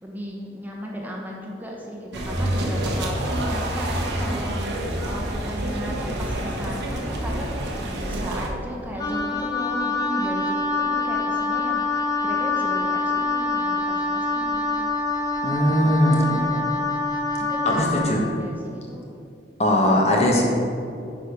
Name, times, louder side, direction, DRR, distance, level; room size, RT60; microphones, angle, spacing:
voice 1, 0.0-4.7 5.0-13.0 13.3-14.9 15.8-16.7 17.4-19.0, equal, 10° right, -2 dB, 1.0 m, -35 dB
sound 1, 2.1-8.5, right 1 dB, 80° right, 1.2 m, -27 dB
Wind instrument woodwind instrument, 9.0-18.2, left 3 dB, 20° left, 0.6 m, -25 dB
voice 2, 15.4-16.3 17.6-18.2 19.6-20.4, left 1 dB, 35° left, -1 dB, 1.3 m, -20 dB
9.1 x 5.0 x 5.2 m, 2.5 s
head